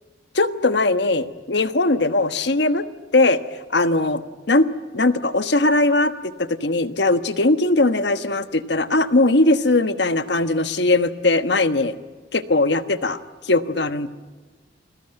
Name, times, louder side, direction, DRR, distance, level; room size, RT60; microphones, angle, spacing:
voice 1, 0.3-2.9 3.1-3.4 3.7-4.2 4.5-4.7 4.9-11.9 12.3-13.2 13.4-14.1, left 2 dB, 75° left, 10 dB, 1.3 m, -19 dB
29.5 x 22.0 x 8.9 m, 1.3 s
head